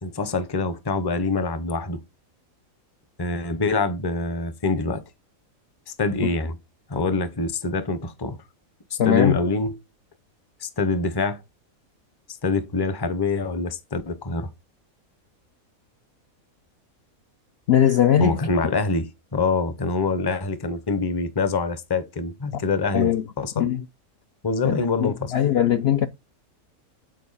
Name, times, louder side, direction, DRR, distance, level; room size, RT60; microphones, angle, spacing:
voice 1, 0.0-2.0 3.2-5.0 5.9-6.6 6.9-8.4 8.9-9.8 10.6-11.4 12.4-14.5 18.2-23.1 23.4-23.7 24.4-25.3, left 3 dB, 25° left, 0.6 m, -25 dB
voice 2, 9.0-9.4 17.7-18.4 22.5-22.6 22.9-23.2 23.6-23.8 24.6-26.1, left 10 dB, 60° left, 0.7 m, -20 dB
9.3 x 4.6 x 4.1 m
omnidirectional pair, 1.5 m